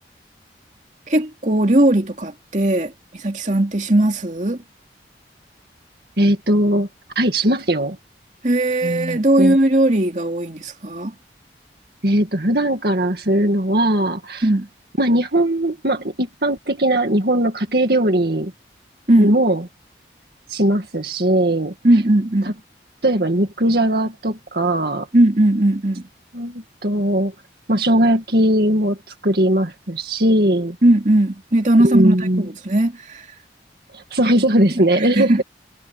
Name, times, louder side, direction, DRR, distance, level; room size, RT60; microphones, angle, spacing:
voice 1, 1.1-4.6 8.4-11.1 14.4-14.7 19.1-19.4 21.8-22.6 25.1-26.1 30.8-33.3 35.0-35.4, right 1 dB, 40° right, 2.7 m, -18 dB
voice 2, 6.2-6.9 7.2-8.0 8.8-9.6 12.0-14.5 15.0-18.5 19.2-19.6 20.5-21.7 22.4-22.5 23.0-25.1 26.3-27.3 27.7-29.0 29.2-30.8 31.8-32.4 33.9-35.4, right 1 dB, 60° right, 2.2 m, -19 dB
head